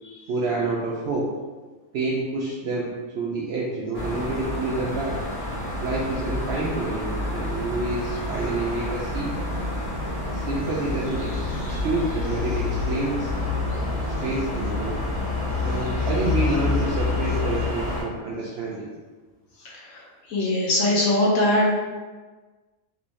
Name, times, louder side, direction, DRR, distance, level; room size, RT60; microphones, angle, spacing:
voice 1, 0.3-1.3 1.9-5.2 5.8-9.4 10.3-13.3 14.2-14.9 15.6-18.9, right 2 dB, 70° right, -5 dB, 0.6 m, -28 dB
sound 1, 3.9-18.0, left 2 dB, 40° left, 1.1 m, -28 dB
voice 2, 20.3-21.7, left 1 dB, 75° left, -4 dB, 1.2 m, -21 dB
3.1 x 3.0 x 2.6 m, 1.3 s
omnidirectional pair, 1.5 m